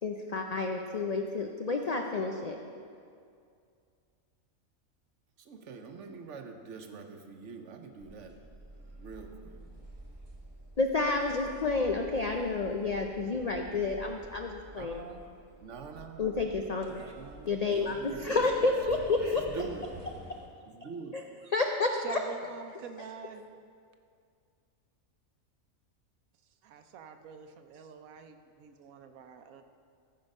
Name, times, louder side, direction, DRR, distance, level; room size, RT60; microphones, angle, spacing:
voice 1, 0.0-2.6 10.8-15.0 16.2-17.1 17.5-19.4 21.1-21.2 21.5-22.2, left 3 dB, 75° left, 3 dB, 0.3 m, -30 dB
voice 2, 5.4-8.4 8.8-9.6 14.8-15.3 15.6-19.9 20.7-21.3, right 4 dB, 65° right, 5 dB, 1.1 m, -45 dB
sound 1, 8.0-20.5, right 1 dB, 20° right, 1.0 m, -47 dB
voice 3, 21.9-23.5 26.6-29.6, right 7 dB, 90° right, 7 dB, 1.1 m, -46 dB
14.5 x 5.0 x 5.3 m, 2.3 s
omnidirectional pair, 1.4 m